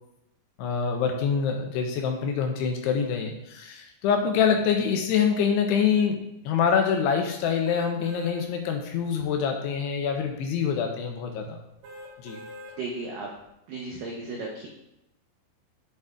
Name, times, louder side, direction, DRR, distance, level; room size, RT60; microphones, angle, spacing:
voice 1, 0.6-11.6 12.2-12.4, left 6 dB, 80° left, 2 dB, 2.5 m, -25 dB
sound 1, 7.6-8.4 8.9-9.0 11.8-12.8 13.3-13.4, left 1 dB, 70° right, 2.8 m, -43 dB
voice 2, 12.8-13.3 13.7-14.7, right 3 dB, 90° right, -2 dB, 1.9 m, -34 dB
11.0 x 6.6 x 2.4 m, 0.85 s
omnidirectional pair, 5.3 m